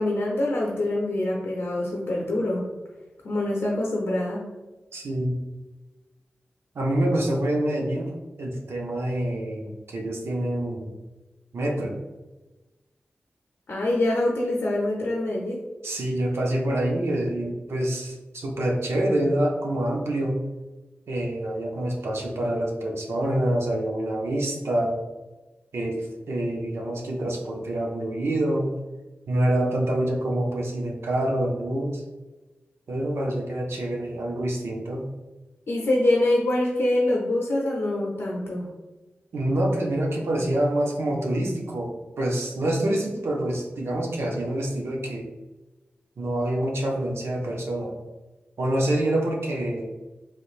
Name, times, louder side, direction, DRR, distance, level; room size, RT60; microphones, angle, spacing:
voice 1, 0.0-2.7 3.2-4.4 13.7-15.6 35.7-38.7, left 1 dB, 80° left, -3 dB, 0.6 m, -25 dB
voice 2, 4.9-5.4 6.7-10.9 11.5-12.0 15.8-20.4 21.1-25.0 25.7-28.7 29.3-32.0 32.9-35.0 39.3-45.3 46.2-48.0 48.6-49.9, right 1 dB, 85° right, -1 dB, 0.6 m, -26 dB
3.2 x 3.1 x 2.4 m, 1.1 s
cardioid pair, 45°, 4 cm